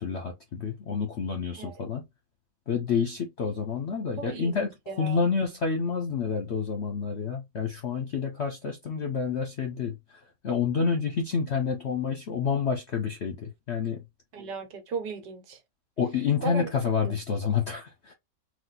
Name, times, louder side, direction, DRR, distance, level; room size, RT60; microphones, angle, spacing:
voice 1, 0.0-2.0 2.7-4.7 5.0-14.0 16.0-18.1, left 6 dB, 55° left, 0.8 m, -29 dB
voice 2, 4.2-4.6 4.9-5.2 14.3-15.6 16.4-16.7 17.0-17.1, right 5 dB, 80° right, 1.7 m, -36 dB
4.1 x 2.5 x 4.0 m
omnidirectional pair, 1.8 m